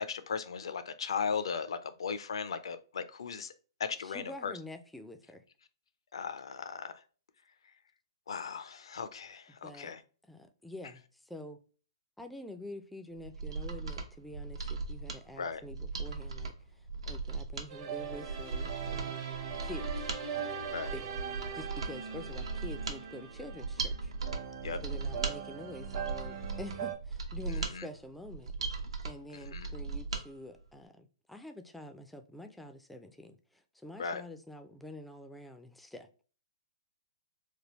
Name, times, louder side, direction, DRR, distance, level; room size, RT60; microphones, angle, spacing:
voice 1, 0.1-3.5 3.8-4.5 6.1-7.0 8.3-10.0 15.4-15.6 20.7-20.9 24.6-24.8 27.5-27.9 29.3-29.7 34.0-34.2, left 6 dB, 75° left, 0.4 m, -37 dB
voice 2, 4.0-5.4 9.6-9.9 10.3-11.6 12.2-16.5 17.1-19.2 19.6-19.9 20.9-21.1 21.5-24.1 24.8-28.5 29.0-36.1, left 1 dB, ahead, 0.3 m, -47 dB
Mechanisms, 13.2-30.2 30.6-30.7, right 4 dB, 80° right, 0.7 m, -38 dB
sound 1, 17.7-26.9, right 7 dB, 50° right, 0.8 m, -40 dB
3.3 x 2.3 x 2.9 m
hypercardioid pair, 140°, 3 cm